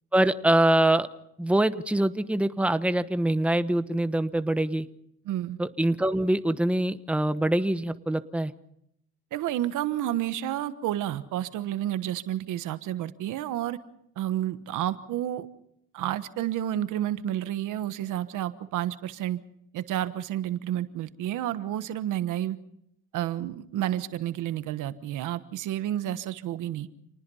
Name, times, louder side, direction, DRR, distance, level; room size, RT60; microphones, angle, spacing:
voice 1, 0.1-1.1 1.4-4.9 5.6-8.5, right 1 dB, 5° right, 11 dB, 1.1 m, -24 dB
voice 2, 5.2-5.6 9.3-13.8 14.2-15.5 15.9-19.4 19.7-22.6 23.1-26.9, right 12 dB, 90° right, 12 dB, 1.2 m, -30 dB
28.5 x 19.5 x 5.6 m, 0.74 s
cardioid pair, 90°, 30 cm